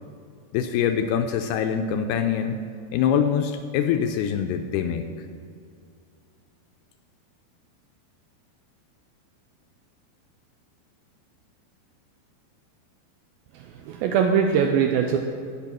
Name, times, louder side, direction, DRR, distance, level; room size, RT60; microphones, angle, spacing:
voice 1, 0.5-2.6 2.9-5.3, left 8 dB, 85° left, 6 dB, 2.3 m, -24 dB
voice 2, 13.5-15.2, right 7 dB, 90° right, 4 dB, 2.2 m, -22 dB
17.0 x 5.9 x 6.1 m, 2.3 s
omnidirectional pair, 4.9 m